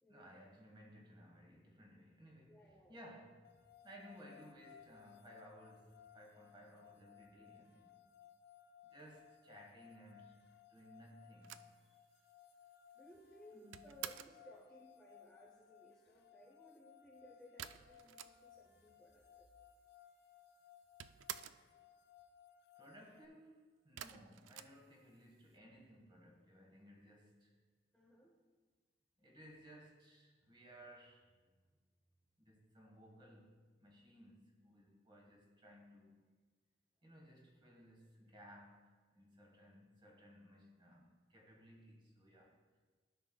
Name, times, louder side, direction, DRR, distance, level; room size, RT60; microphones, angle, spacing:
voice 1, 0.1-8.0 8.9-10.4 10.7-11.7 13.5-13.8 22.7-23.6 23.8-27.5 29.2-31.3 32.4-36.2 37.0-42.6, equal, 25° right, -1 dB, 1.4 m, -59 dB
voice 2, 2.5-3.0 11.8-12.1 12.9-19.5 27.9-28.3 31.7-31.8, left 1 dB, 5° left, -3 dB, 0.7 m, -61 dB
sound 1, 3.4-23.3, left 9 dB, 60° left, 0.4 m, -63 dB
sound 2, 11.4-14.5 17.6-18.8 19.0-19.1 19.3-20.1 20.4-21.7 24.0-25.5, right 11 dB, 90° right, 0.3 m, -50 dB
13.0 x 6.2 x 2.3 m, 1.4 s
head